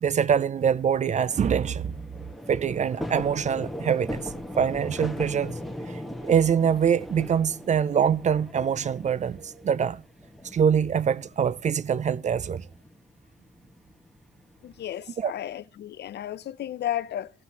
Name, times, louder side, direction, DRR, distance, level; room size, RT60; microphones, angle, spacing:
voice 1, 0.0-2.0 2.5-4.2 4.6-5.6 5.9-10.0 10.5-12.7 15.2-15.3, right 7 dB, 35° right, 0.4 m, -24 dB
sound 1, 0.6-14.8, equal, ahead, 1.6 m, -39 dB
voice 2, 14.6-17.3, left 11 dB, 60° left, 0.5 m, -33 dB
16.0 x 5.7 x 2.9 m
cardioid pair, 90°, 20 cm